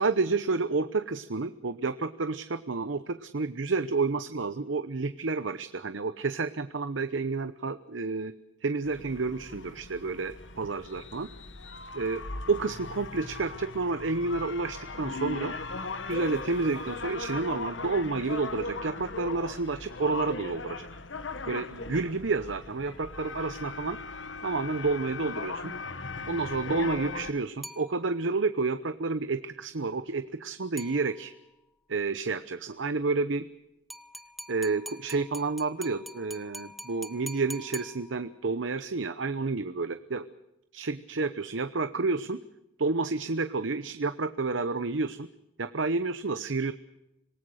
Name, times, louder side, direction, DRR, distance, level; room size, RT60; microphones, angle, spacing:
voice 1, 0.0-8.3 8.6-11.3 11.9-12.2 12.5-15.5 16.1-20.9 21.5-24.0 24.4-25.7 26.3-31.3 31.9-33.5 34.5-40.2 40.7-42.4 42.8-45.3 45.6-46.7, right 3 dB, 90° right, 12 dB, 0.9 m, -30 dB
sound 1, 8.8-27.3, left 3 dB, 85° left, 1.5 m, -39 dB
sound 2, 27.6-28.5 30.8-31.5 33.9-38.5, equal, ahead, 0.9 m, -45 dB
26.5 x 18.5 x 6.4 m, 0.91 s
head